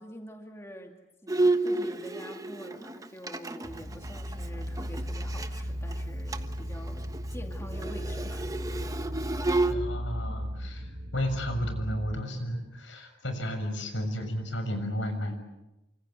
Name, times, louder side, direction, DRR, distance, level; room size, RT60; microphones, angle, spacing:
voice 1, 0.0-9.2, equal, 15° left, 3 dB, 2.4 m, -46 dB
Bowed string instrument, 1.3-5.6 5.9-6.0 6.3-6.6 6.9-9.7, right 2 dB, 20° right, 1.2 m, -30 dB
sound 1, 3.6-12.2, equal, 45° right, 3.4 m, -36 dB
voice 2, 9.7-15.4, equal, 75° left, 7 dB, 6.7 m, -33 dB
29.0 x 25.5 x 7.9 m, 0.96 s
head